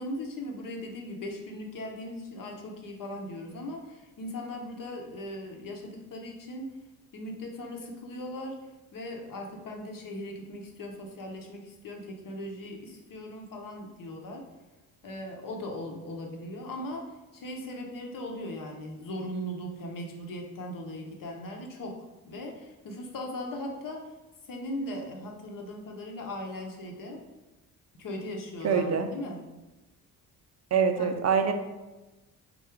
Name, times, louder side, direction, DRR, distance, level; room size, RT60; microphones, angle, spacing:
voice 1, 0.0-6.8 7.1-8.5 8.9-14.4 15.0-24.1 24.5-27.2 28.0-29.4 31.0-31.1, left 1 dB, 45° left, 1 dB, 1.0 m, -39 dB
voice 2, 28.6-29.1 30.7-31.5, right 6 dB, 35° right, 7 dB, 0.6 m, -24 dB
3.8 x 2.3 x 4.5 m, 1.1 s
hypercardioid pair, 50°, 44 cm